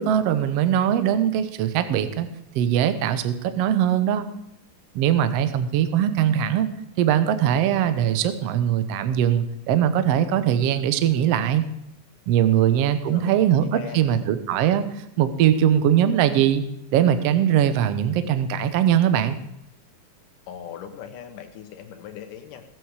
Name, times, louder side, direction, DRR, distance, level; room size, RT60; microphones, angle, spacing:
voice 1, 0.0-2.3 2.5-4.3 4.9-6.7 7.0-11.6 12.3-13.6 13.9-14.8 15.2-16.6 16.9-19.4, right 10 dB, 70° right, 10 dB, 1.5 m, -21 dB
voice 2, 13.1-14.3 20.5-22.7, left 9 dB, 80° left, 6 dB, 2.8 m, -40 dB
18.5 x 7.7 x 4.8 m, 0.84 s
omnidirectional pair, 3.8 m